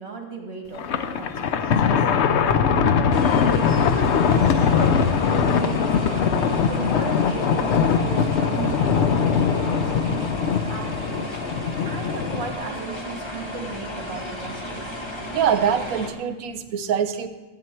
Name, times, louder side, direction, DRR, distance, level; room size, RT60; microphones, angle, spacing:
voice 1, 0.0-2.0 2.6-3.1 3.7-6.3 6.6-15.0, right 3 dB, 50° right, 1 dB, 2.2 m, -36 dB
Thunder, 0.7-12.5, left 6 dB, 60° left, 0.8 m, -21 dB
sound 1, 3.1-16.1, left 1 dB, 20° left, 1.2 m, -34 dB
voice 2, 15.3-17.3, right 8 dB, 85° right, 10 dB, 1.2 m, -24 dB
14.0 x 9.1 x 4.5 m, 1.3 s
omnidirectional pair, 1.5 m